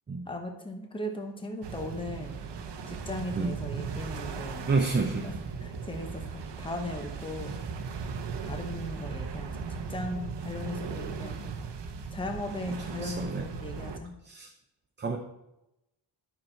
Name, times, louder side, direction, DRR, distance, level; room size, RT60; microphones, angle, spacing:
voice 1, 0.3-2.4 2.9-4.7 5.2-5.3 5.6-7.6 8.4-11.6 12.1-14.1, left 1 dB, 10° left, 3 dB, 0.9 m, -38 dB
sound 1, 1.6-14.0, right 5 dB, 65° right, 0.9 m, -38 dB
voice 2, 4.7-5.3 12.7-13.4 14.3-14.5 15.0-15.2, right 3 dB, 25° right, 3 dB, 0.6 m, -29 dB
10.5 x 6.1 x 4.5 m, 0.90 s
wide cardioid pair, 160°, 46 cm